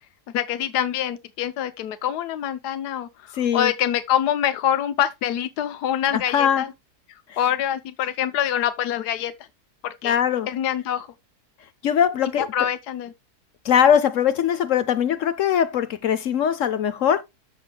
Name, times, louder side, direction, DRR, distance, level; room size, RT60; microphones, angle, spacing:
voice 1, 0.3-3.1 3.3-6.7 7.4-9.3 10.0-10.2 10.5-11.1 12.4-13.1, left 10 dB, 80° left, 1.3 m, -25 dB
voice 2, 3.4-3.7 6.1-6.6 10.0-10.5 11.8-12.5 13.6-17.2, left 8 dB, 60° left, 0.9 m, -21 dB
14.0 x 5.2 x 2.3 m
omnidirectional pair, 1.7 m